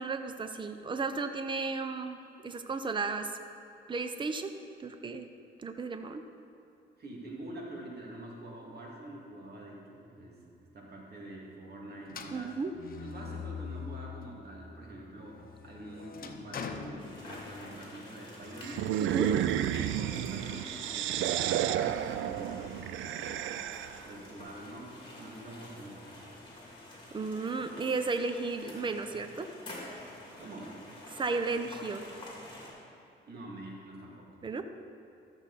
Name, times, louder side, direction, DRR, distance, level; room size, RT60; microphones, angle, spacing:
voice 1, 0.0-3.3 3.9-4.5 4.8-5.3 5.6-6.2 12.3-12.7 19.0-19.3 27.1-29.5 31.1-32.0 34.4-34.6, right 4 dB, 25° right, 8 dB, 0.6 m, -34 dB
voice 2, 7.0-12.6 13.0-18.9 19.2-23.5 24.0-26.5 30.4-30.8 33.3-34.3, right 1 dB, 55° right, -2 dB, 2.4 m, -46 dB
sound 1, 12.1-14.5 14.9-17.8, left 6 dB, 45° left, 0.8 m, -43 dB
sound 2, 17.0-32.7, left 1 dB, 25° left, 2.6 m, -49 dB
sound 3, 18.6-24.1, right 11 dB, 75° right, 0.4 m, -31 dB
13.0 x 7.0 x 4.1 m, 2.8 s
cardioid pair, 90°, 20 cm